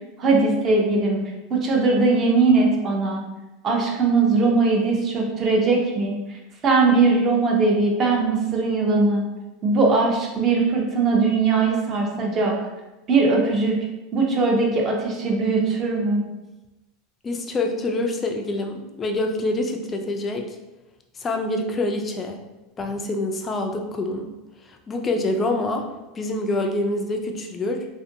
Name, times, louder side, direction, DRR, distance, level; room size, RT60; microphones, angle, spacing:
voice 1, 0.2-1.2 1.5-3.2 3.6-6.2 6.6-9.3 9.6-12.5 13.1-13.7 14.1-16.2, right 3 dB, 30° right, 0 dB, 0.5 m, -20 dB
voice 2, 17.2-20.5 21.2-22.4 22.8-24.3 24.7-25.9 26.1-27.9, left 2 dB, 20° left, 3 dB, 0.3 m, -26 dB
2.5 x 2.5 x 2.6 m, 1.0 s
supercardioid pair, 145°, 0 cm